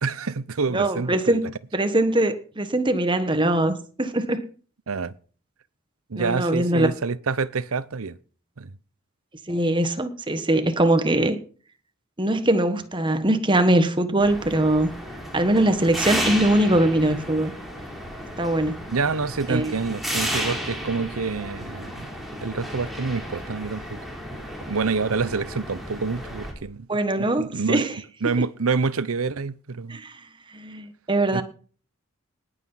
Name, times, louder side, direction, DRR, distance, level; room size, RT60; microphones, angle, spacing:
voice 1, 0.0-1.4 4.9-5.1 6.1-8.2 8.6-8.7 18.9-22.1 22.4-24.0 24.2-24.4 24.7-26.9 27.2-27.9 28.2-30.0 31.3-31.4, right 4 dB, 85° right, 0.8 m, -27 dB
voice 2, 0.7-1.4 1.7-4.4 6.2-6.9 9.5-11.4 12.2-14.9 15.3-17.5 18.4-18.8 19.5-19.7 26.9-28.0 29.9-30.1 30.5-31.4, right 1 dB, 25° right, 1.4 m, -22 dB
sound 1, 14.2-26.5, equal, ahead, 3.7 m, -33 dB
19.0 x 8.2 x 5.7 m
head